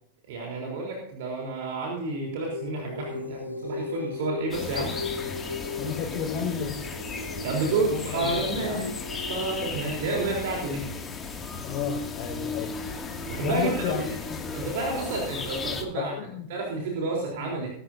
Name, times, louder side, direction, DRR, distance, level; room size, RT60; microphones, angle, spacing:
voice 1, 0.3-4.9 7.4-8.9 9.3-10.8 13.3-14.2 14.5-16.1 16.5-17.7, right 3 dB, 50° right, -1 dB, 3.8 m, -30 dB
sound 1, 2.5-9.3, left 3 dB, 85° left, 1.2 m, -37 dB
sound 2, 4.5-15.8, left 4 dB, 20° left, 2.3 m, -35 dB
voice 2, 5.8-6.8 7.6-8.9 10.7-10.8 11.6-14.0 14.3-14.4 15.9-16.5 17.4-17.5, left 7 dB, 40° left, -5 dB, 4.7 m, -33 dB
21.5 x 11.0 x 2.7 m, 0.70 s
figure-of-eight pair, 90°, 0 cm